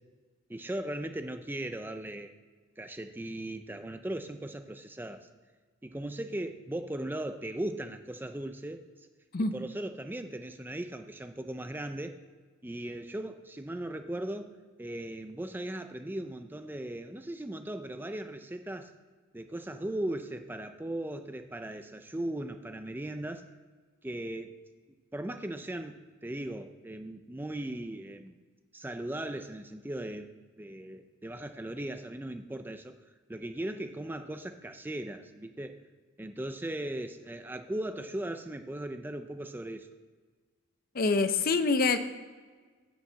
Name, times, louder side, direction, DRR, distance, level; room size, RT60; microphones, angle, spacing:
voice 1, 0.5-2.3 2.8-5.3 5.8-8.8 9.5-12.2 12.6-18.9 19.3-23.5 24.0-24.5 25.1-26.0 26.2-28.4 28.7-30.3 30.6-32.9 33.3-35.7 36.2-39.9, right 1 dB, 10° right, 8 dB, 0.4 m, -38 dB
voice 2, 40.9-42.0, left 3 dB, 45° left, 10 dB, 0.6 m, -25 dB
7.0 x 6.2 x 7.4 m, 1.5 s
head